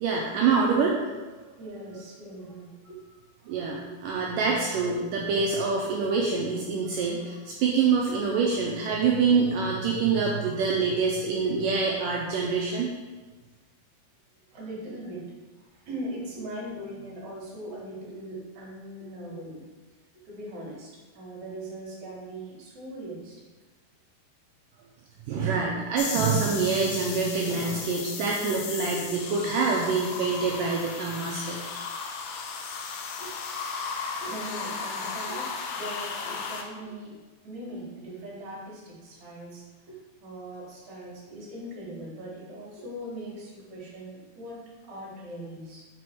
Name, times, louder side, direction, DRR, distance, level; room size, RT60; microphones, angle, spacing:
voice 1, 0.0-1.2 3.5-12.9 25.3-31.6, right 5 dB, 80° right, -2 dB, 2.0 m, -26 dB
voice 2, 1.6-3.0 3.8-3.9 14.5-15.2 15.7-19.6 20.2-20.9 21.1-23.3 33.2-33.3 34.2-37.1 37.4-45.8, right 1 dB, 55° right, -5 dB, 2.9 m, -40 dB
sound 1, 26.0-36.6, left 5 dB, 85° left, 1.7 m, -35 dB
6.2 x 5.1 x 4.6 m, 1.3 s
omnidirectional pair, 4.5 m